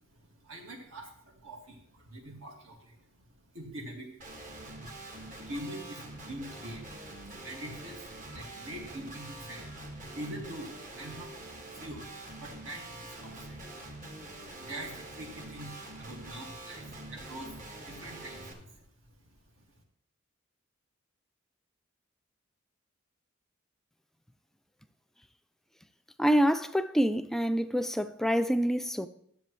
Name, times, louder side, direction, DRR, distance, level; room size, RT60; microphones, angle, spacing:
voice 1, 0.4-3.0 3.5-4.1 5.5-6.9 7.4-9.8 10.1-11.3 11.8-12.0 12.4-13.6 14.7-17.5 17.8-18.8, right 1 dB, 70° right, 2.0 m, -43 dB
Guitar, 4.2-18.5, right 2 dB, 40° right, 1.4 m, -45 dB
voice 2, 26.2-29.1, equal, ahead, 0.3 m, -26 dB
13.0 x 7.4 x 3.1 m
head